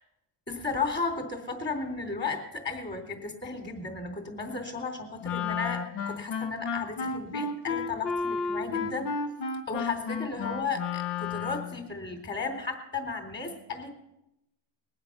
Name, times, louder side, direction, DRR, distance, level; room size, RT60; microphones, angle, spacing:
voice 1, 0.5-9.3 9.7-13.9, left 4 dB, 25° left, 4 dB, 3.6 m, -34 dB
Wind instrument woodwind instrument, 5.2-11.8, left 5 dB, 65° left, 1.5 m, -32 dB
20.5 x 8.1 x 6.6 m, 0.90 s
cardioid pair, 105°, 44 cm